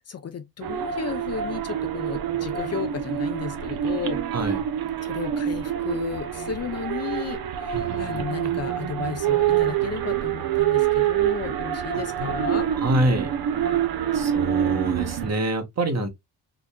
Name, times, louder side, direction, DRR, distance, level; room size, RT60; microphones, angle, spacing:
voice 1, 0.1-4.2 5.0-12.7 15.9-16.1, left 7 dB, 40° left, 0.7 m, -34 dB
sound 1, 0.6-15.3, right 10 dB, 60° right, 0.9 m, -26 dB
voice 2, 7.7-8.2 11.9-12.3 12.7-13.3 14.1-16.1, right 1 dB, 40° right, 1.4 m, -26 dB
3.9 x 3.2 x 2.3 m
supercardioid pair, 65°, 40 cm